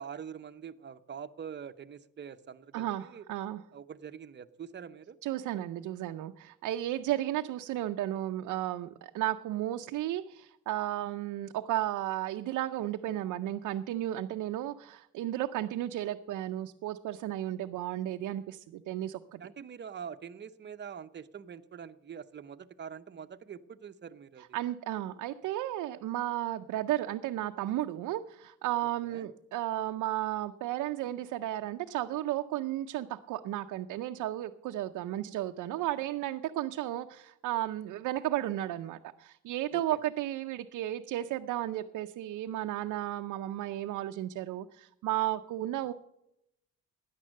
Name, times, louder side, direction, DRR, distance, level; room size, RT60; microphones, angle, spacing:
voice 1, 0.0-3.2 3.7-5.2 19.4-24.6 29.0-29.3 39.7-40.0, right 7 dB, 35° right, 9 dB, 0.8 m, -44 dB
voice 2, 2.7-3.6 5.2-19.4 24.5-45.9, right 13 dB, 85° right, 5 dB, 0.6 m, -34 dB
13.0 x 9.8 x 6.5 m, 0.81 s
cardioid pair, 90°, 30 cm